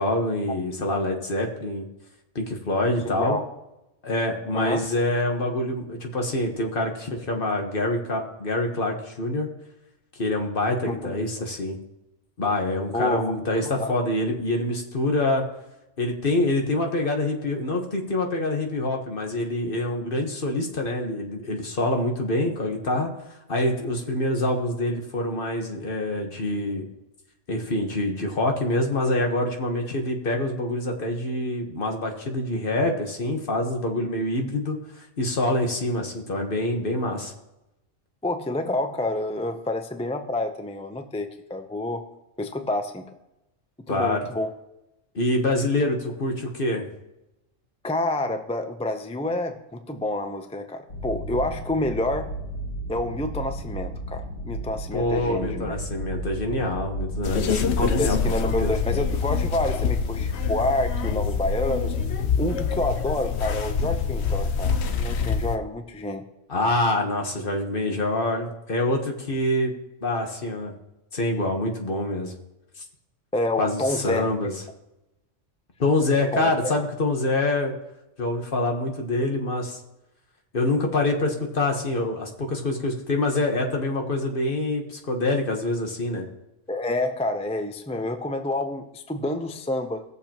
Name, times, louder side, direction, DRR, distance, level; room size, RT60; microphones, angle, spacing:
voice 1, 0.0-1.8 2.3-3.4 4.0-9.5 10.2-11.8 12.4-15.4 16.0-23.1 23.5-26.8 27.5-37.3 43.9-44.2 45.1-46.8 54.9-58.3 58.6-58.7 66.5-69.7 70.0-70.7 71.1-72.3 73.6-74.5 75.8-77.7 78.2-79.8 80.5-86.3, left 1 dB, 45° left, 2 dB, 1.4 m, -26 dB
voice 2, 10.8-11.2 12.9-13.9 38.2-42.0 42.4-43.1 43.8-44.5 47.8-52.3 52.9-55.8 57.8-61.9 62.4-64.7 65.0-66.2 73.3-74.3 76.3-76.7 86.7-90.0, left 1 dB, 10° left, 6 dB, 0.3 m, -28 dB
sound 1, 50.9-60.0, equal, 90° left, 2.6 m, -34 dB
sound 2, 57.2-65.6, left 5 dB, 65° left, 0.9 m, -25 dB
19.0 x 6.8 x 2.9 m, 0.94 s
omnidirectional pair, 1.3 m